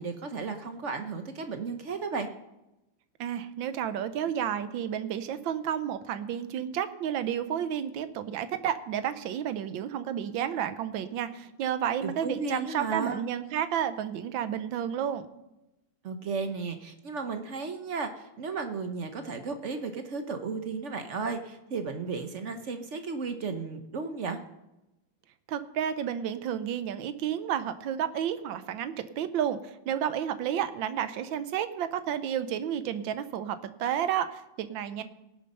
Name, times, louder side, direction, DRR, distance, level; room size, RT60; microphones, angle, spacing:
voice 1, 0.0-2.3 12.0-13.3 16.0-24.4, right 4 dB, 50° right, 7 dB, 0.9 m, -34 dB
voice 2, 3.2-15.3 25.5-35.0, right 9 dB, 90° right, 12 dB, 1.5 m, -31 dB
18.0 x 6.7 x 5.4 m, 0.95 s
omnidirectional pair, 2.0 m